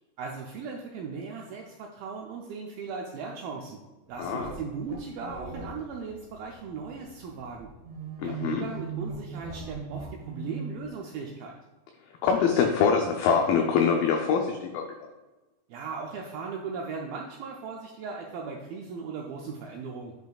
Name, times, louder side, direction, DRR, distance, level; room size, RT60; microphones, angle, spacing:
voice 1, 0.2-3.8 4.1-7.7 8.2-11.5 15.7-20.1, right 5 dB, 85° right, 0 dB, 2.1 m, -38 dB
sound 1, 4.1-10.9, right 4 dB, 60° right, 2.6 m, -40 dB
voice 2, 4.2-4.5 8.2-8.7 12.2-14.8, left 6 dB, 85° left, 3 dB, 2.1 m, -24 dB
9.7 x 5.3 x 2.3 m, 1.1 s
omnidirectional pair, 4.9 m